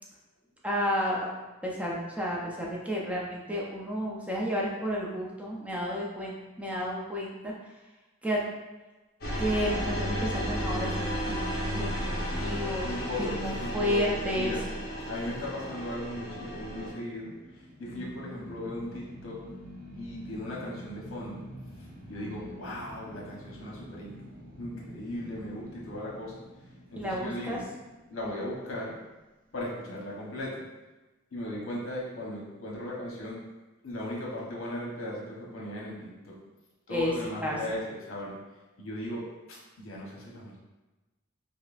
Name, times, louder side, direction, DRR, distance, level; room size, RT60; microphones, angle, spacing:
voice 1, 0.6-1.3 1.6-7.8 8.2-8.5 9.4-11.9 12.2-12.9 13.2-14.5 17.9-18.2 22.1-22.6 27.0-27.6 36.9-37.1 37.4-37.8, equal, 5° right, -4 dB, 0.5 m, -32 dB
sound 1, 9.2-16.9, equal, 50° left, 0.8 m, -33 dB
sound 2, 11.8-29.0, equal, 45° right, 0.9 m, -48 dB
voice 2, 12.8-14.6 15.0-19.4 19.9-21.4 22.0-24.1 24.6-26.4 26.9-27.7 28.1-29.0 29.5-30.6 31.3-33.4 33.8-36.3 36.9-38.4 38.8-40.6, left 1 dB, 80° left, -3 dB, 0.9 m, -37 dB
5.3 x 2.0 x 2.5 m, 1.1 s
head